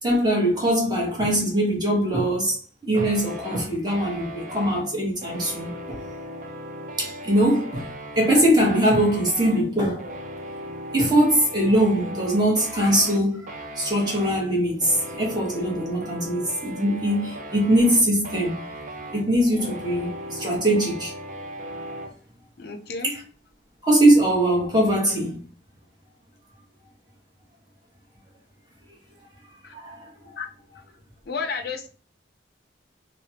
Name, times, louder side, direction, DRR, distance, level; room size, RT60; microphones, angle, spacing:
voice 1, 0.0-6.0 7.0-10.1 10.9-13.5 13.8-18.6 19.1-21.1 23.0-23.2 23.8-25.4 29.7-30.1, right 1 dB, 20° right, 1.0 m, -22 dB
sound 1, 3.0-22.1, right 1 dB, 45° right, 0.5 m, -38 dB
voice 2, 22.6-23.2 29.6-29.7 30.4-30.5 31.3-31.9, left 5 dB, 55° left, 0.4 m, -31 dB
3.3 x 2.1 x 2.7 m
head